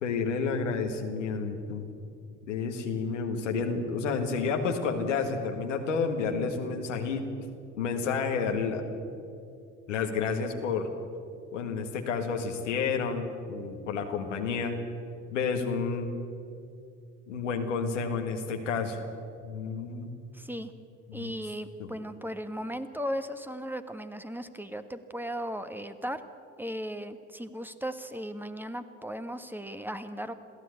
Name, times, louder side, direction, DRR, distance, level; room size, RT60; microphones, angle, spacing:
voice 1, 0.0-1.9 2.5-7.2 7.8-8.8 9.9-10.9 11.5-14.8 15.3-16.1 17.3-19.0 19.4-20.1 21.1-21.3 21.8-21.9, left 5 dB, 90° left, 4 dB, 1.8 m, -30 dB
voice 2, 20.3-20.7 21.1-26.2 26.6-30.3, equal, 5° right, 9 dB, 1.5 m, -36 dB
22.0 x 15.0 x 8.2 m, 2.5 s
hypercardioid pair, 55°, 36 cm